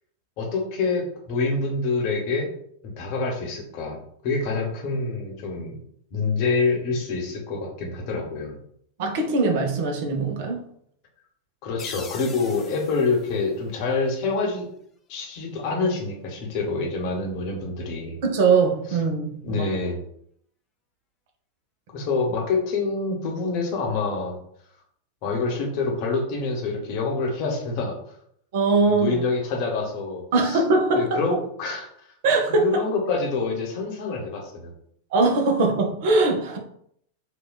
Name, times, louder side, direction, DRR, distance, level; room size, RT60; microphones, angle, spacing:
voice 1, 0.4-2.5 2.8-5.8 6.1-8.6 11.6-14.7 15.1-18.2 19.4-20.0 21.9-24.4 25.2-27.9 28.9-30.6 30.9-32.1 32.5-34.7, left 3 dB, 45° left, 0 dB, 0.8 m, -26 dB
voice 2, 9.0-10.6 18.2-19.7 28.5-29.2 30.3-31.2 32.2-32.8 35.1-36.6, right 3 dB, 50° right, 3 dB, 0.6 m, -21 dB
sound 1, 11.8-14.4, left 5 dB, 25° left, 0.4 m, -43 dB
3.5 x 2.3 x 2.2 m, 0.67 s
figure-of-eight pair, 90°, 0 cm